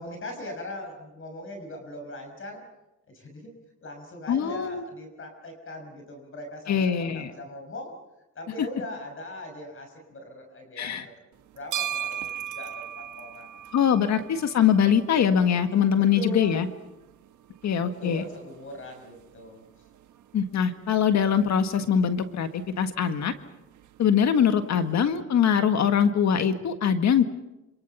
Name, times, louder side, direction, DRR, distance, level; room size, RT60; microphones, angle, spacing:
voice 1, 0.0-2.6 3.1-3.5 3.8-8.0 8.3-11.2 11.5-13.5 16.0-16.7 17.8-19.6, left 1 dB, 45° left, 4 dB, 6.3 m, -40 dB
voice 2, 4.3-4.8 6.7-7.3 8.6-8.7 10.8-11.1 13.7-16.7 17.6-18.2 20.3-23.3 24.0-27.2, left 8 dB, 65° left, 8 dB, 1.8 m, -23 dB
sound 1, 11.3-25.2, right 10 dB, 75° right, 1.3 m, -41 dB
27.0 x 26.5 x 5.7 m, 0.95 s
cardioid pair, 90°, 30 cm